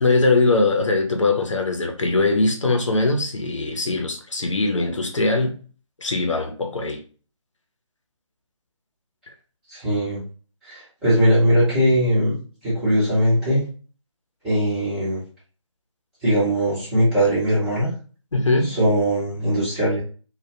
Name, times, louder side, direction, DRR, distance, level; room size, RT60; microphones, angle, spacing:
voice 1, 0.0-5.6 6.0-7.0 18.3-18.7, left 3 dB, 65° left, 2 dB, 0.6 m, -21 dB
voice 2, 9.7-10.2 10.6-12.3 12.6-13.7 14.4-15.2 16.2-17.9 18.6-20.0, equal, 5° right, -12 dB, 0.6 m, -20 dB
2.2 x 2.1 x 2.8 m, 0.40 s
figure-of-eight pair, 150°, 17 cm